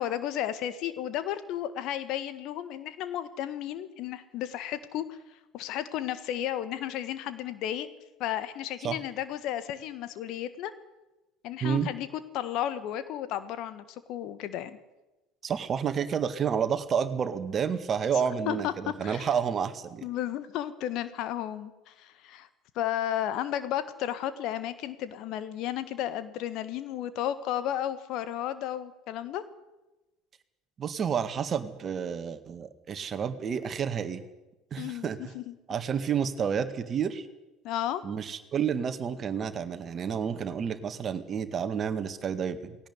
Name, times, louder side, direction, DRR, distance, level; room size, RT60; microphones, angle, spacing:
voice 1, 0.0-5.2 5.5-7.9 8.2-10.7 11.4-12.1 12.3-14.8 18.5-18.7 19.0-19.3 20.0-22.5 22.7-29.4 34.8-35.1 35.3-35.5 37.6-38.0, left 11 dB, 55° left, 13 dB, 1.6 m, -33 dB
voice 2, 15.4-20.0 30.8-34.2 34.7-35.3 35.7-37.3 38.0-42.8, right 7 dB, 35° right, 11 dB, 1.9 m, -30 dB
18.5 x 17.5 x 9.7 m, 1.0 s
figure-of-eight pair, 65°, 0 cm